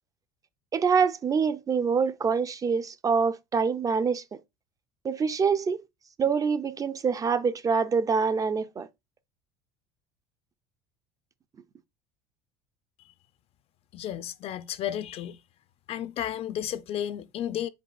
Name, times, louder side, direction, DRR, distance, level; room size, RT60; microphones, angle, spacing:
voice 1, 0.7-4.2 5.0-5.8 6.2-8.9, right 5 dB, 25° right, 0.4 m, -25 dB
voice 2, 13.9-15.4 15.9-17.7, left 11 dB, 45° left, 0.4 m, -33 dB
5.2 x 3.5 x 2.4 m
supercardioid pair, 105°, 14 cm